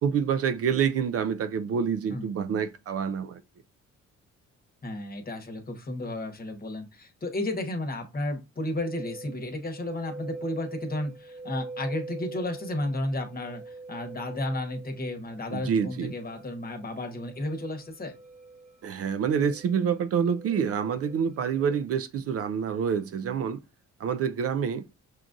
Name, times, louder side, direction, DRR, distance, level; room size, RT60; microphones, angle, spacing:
voice 1, 0.0-3.4 15.5-16.1 18.8-23.6 24.0-24.9, right 7 dB, 50° right, 0.4 m, -27 dB
voice 2, 4.8-18.1, left 1 dB, 30° left, 1.1 m, -33 dB
sound 1, 8.8-21.8, right 3 dB, 20° right, 0.9 m, -44 dB
6.0 x 2.5 x 2.5 m
cardioid pair, 90°, 30 cm